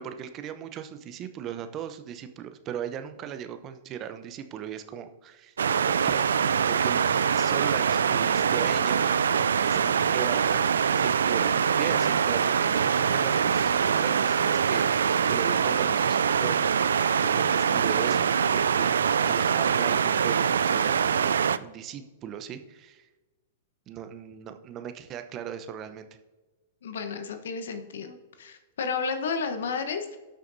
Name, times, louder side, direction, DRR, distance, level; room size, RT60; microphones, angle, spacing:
voice 1, 0.0-6.3 6.7-7.0 7.4-9.0 9.7-10.7 10.9-14.9 15.2-18.2 18.5-18.9 19.2-21.2 21.6-23.1 23.9-26.1, right 9 dB, 35° right, 9 dB, 0.9 m, -38 dB
sound 1, 5.6-21.6, right 7 dB, 80° right, 0.3 m, -24 dB
voice 2, 26.8-30.2, left 5 dB, 75° left, 8 dB, 1.1 m, -32 dB
17.0 x 6.4 x 2.7 m, 1.2 s
hypercardioid pair, 110°, 0 cm